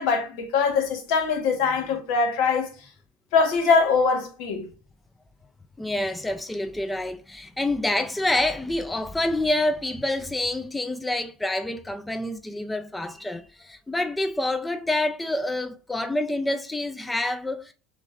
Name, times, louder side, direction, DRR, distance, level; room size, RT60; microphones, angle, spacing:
voice 1, 0.0-2.7 3.3-4.7, left 5 dB, 70° left, 1.3 m, -22 dB
voice 2, 5.8-17.7, left 1 dB, 10° left, 0.4 m, -27 dB
6.0 x 2.6 x 2.5 m
supercardioid pair, 100°, 0 cm